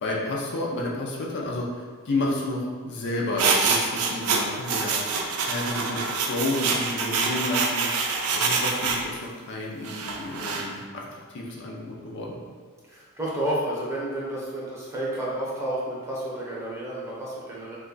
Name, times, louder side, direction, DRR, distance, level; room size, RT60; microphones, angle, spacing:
voice 1, 0.0-4.9 5.4-7.9 8.3-12.4, left 2 dB, 55° left, -2 dB, 0.5 m, -31 dB
sound 1, 3.4-9.0 9.8-10.7, right 4 dB, 70° right, 0.4 m, -26 dB
voice 2, 12.9-17.8, right 1 dB, 10° right, -6 dB, 0.8 m, -31 dB
3.1 x 2.3 x 3.8 m, 1.5 s
head